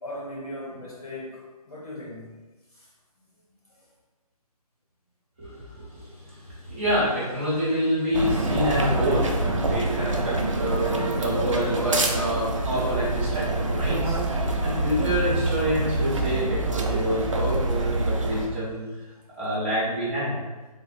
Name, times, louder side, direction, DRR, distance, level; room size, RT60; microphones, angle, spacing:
voice 1, 0.0-2.4 2.7-2.9 3.2-3.9, left 1 dB, 75° left, -4 dB, 1.3 m, -39 dB
voice 2, 5.4-18.9 19.4-20.4, equal, 20° right, -9 dB, 0.9 m, -27 dB
sound 1, 8.1-18.5, right 2 dB, 55° right, 0.5 m, -26 dB
3.6 x 2.1 x 4.1 m, 1.2 s
hypercardioid pair, 175°, 20 cm